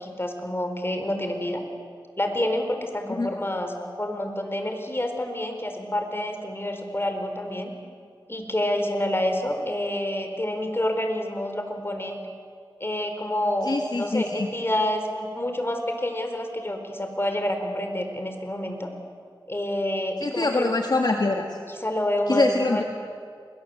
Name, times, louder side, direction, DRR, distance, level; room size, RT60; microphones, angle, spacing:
voice 1, 0.0-1.6 2.2-7.7 8.3-12.2 12.8-13.7 13.9-18.9 19.5-20.7 21.7-22.8, left 1 dB, 30° left, 5 dB, 4.4 m, -28 dB
voice 2, 13.6-14.5 20.2-21.4 22.3-22.8, left 2 dB, 55° left, 3 dB, 1.9 m, -24 dB
29.0 x 21.5 x 7.9 m, 2.1 s
wide cardioid pair, 50°, 9 cm